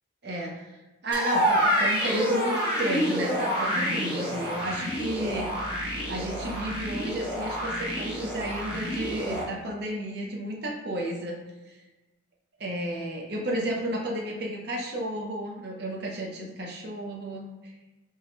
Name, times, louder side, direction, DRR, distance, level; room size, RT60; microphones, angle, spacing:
voice 1, 0.2-0.8 1.0-5.5 6.1-11.4 11.7-11.8 12.6-17.7, right 1 dB, 55° right, -1 dB, 0.6 m, -32 dB
sound 1, 1.1-9.4, equal, 25° right, 1.0 m, -28 dB
3.4 x 3.0 x 3.2 m, 1.1 s
head